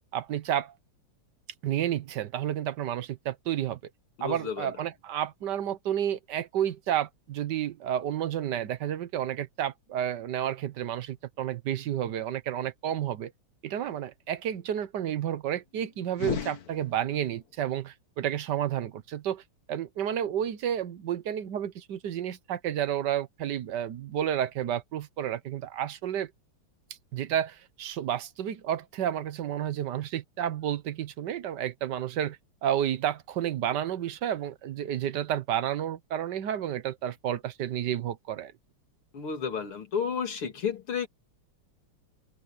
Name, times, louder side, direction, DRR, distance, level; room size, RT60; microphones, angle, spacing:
voice 1, 0.1-0.7 1.6-3.8 4.2-13.3 13.6-19.4 19.7-26.3 27.1-38.5, right 10 dB, 60° right, 1.4 m, -31 dB
voice 2, 4.2-4.7 39.1-41.1, left 6 dB, 80° left, 3.5 m, -32 dB
sound 1, 16.1-17.4, left 9 dB, 50° left, 1.3 m, -35 dB
omnidirectional pair, 2.4 m